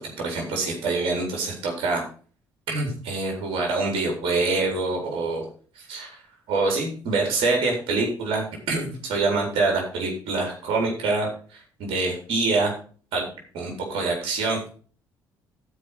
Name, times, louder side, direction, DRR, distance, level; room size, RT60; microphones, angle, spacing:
voice 1, 0.0-2.0 2.7-5.5 5.8-6.2 6.5-12.7 13.1-14.7, right 3 dB, 60° right, 0 dB, 4.0 m, -26 dB
13.5 x 4.8 x 6.0 m, 0.41 s
hypercardioid pair, 50°, 11 cm